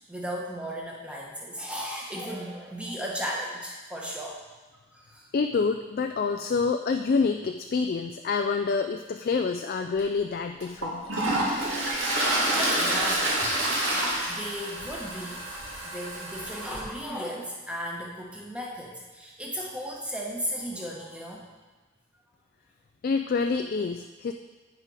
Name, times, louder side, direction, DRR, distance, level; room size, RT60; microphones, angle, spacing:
voice 1, 0.1-4.4 4.9-5.3 12.5-15.4 15.9-21.4, equal, 5° right, -3 dB, 1.2 m, -36 dB
voice 2, 5.3-11.1 23.0-24.3, left 4 dB, 45° left, 6 dB, 0.3 m, -27 dB
Toilet flush, 10.0-10.1 10.6-16.8, right 1 dB, 65° right, 2.2 m, -28 dB
8.9 x 6.6 x 4.9 m, 1.3 s
head